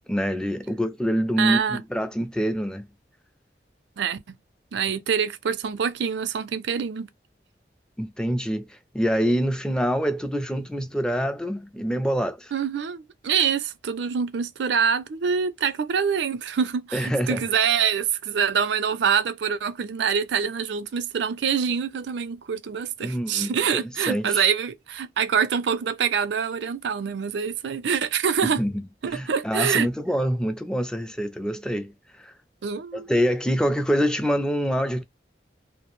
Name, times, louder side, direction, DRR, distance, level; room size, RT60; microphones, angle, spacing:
voice 1, 0.1-2.9 8.0-12.5 16.9-17.4 23.0-24.5 28.4-31.9 32.2-32.3 32.9-35.0, equal, 5° left, 0.3 m, -26 dB
voice 2, 1.4-1.8 4.0-4.4 4.7-7.1 12.5-28.6 29.0-29.9 32.6-33.1, right 7 dB, 80° right, 0.4 m, -25 dB
2.3 x 2.0 x 2.9 m
head